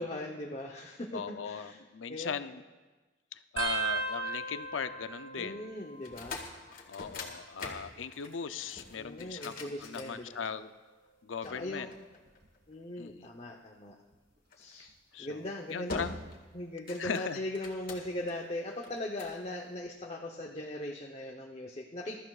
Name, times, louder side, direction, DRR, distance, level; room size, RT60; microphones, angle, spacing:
voice 1, 0.0-1.8 2.1-2.4 5.4-6.4 9.0-10.4 11.4-11.9 12.7-13.9 14.6-14.9 15.2-16.2 16.5-22.2, left 1 dB, 35° left, 0 dB, 0.9 m, -39 dB
voice 2, 1.1-2.6 3.3-5.7 6.9-10.7 11.2-11.9 13.0-13.3 15.1-15.3 15.7-16.1 17.0-17.4, left 6 dB, 85° left, 11 dB, 0.6 m, -38 dB
sound 1, 3.6-6.7 7.0-7.6 8.6-10.1 10.7-11.1 12.3-12.6 14.1-14.2, right 4 dB, 60° right, 1.8 m, -39 dB
sound 2, 6.0-10.7 11.4-12.7 14.5-14.8 15.3-15.5 15.9-16.4 16.7-18.3 18.8-19.4, left 3 dB, 50° left, 1.8 m, -44 dB
22.0 x 13.0 x 2.4 m, 1.2 s
head